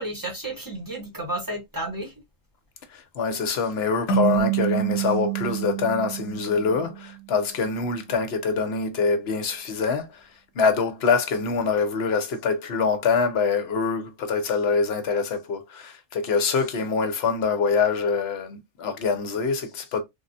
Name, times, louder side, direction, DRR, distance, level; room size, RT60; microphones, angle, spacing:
voice 1, 0.0-2.1, right 1 dB, 20° right, 0.8 m, -32 dB
voice 2, 2.9-10.2 10.5-20.0, left 5 dB, 60° left, 0.8 m, -25 dB
sound 1, 4.1-7.3, right 11 dB, 85° left, 1.0 m, -27 dB
3.5 x 2.1 x 2.6 m
omnidirectional pair, 1.4 m